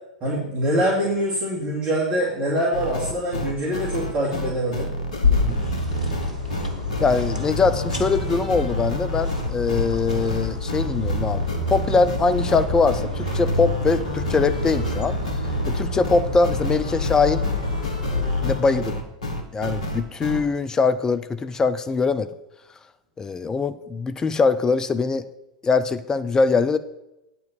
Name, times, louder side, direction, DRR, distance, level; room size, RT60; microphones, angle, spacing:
voice 1, 0.2-4.9, right 1 dB, 30° right, -5 dB, 2.5 m, -24 dB
sound 1, 2.7-20.4, left 1 dB, 70° left, 1.3 m, -30 dB
sound 2, 5.2-18.6, left 2 dB, 85° right, 1.4 m, -27 dB
voice 2, 7.0-15.2 15.7-17.4 18.4-19.0 19.5-22.3 23.2-25.3 25.6-26.8, left 4 dB, 15° left, 11 dB, 0.5 m, -22 dB
9.2 x 4.6 x 7.4 m, 0.92 s
figure-of-eight pair, 85°, 4 cm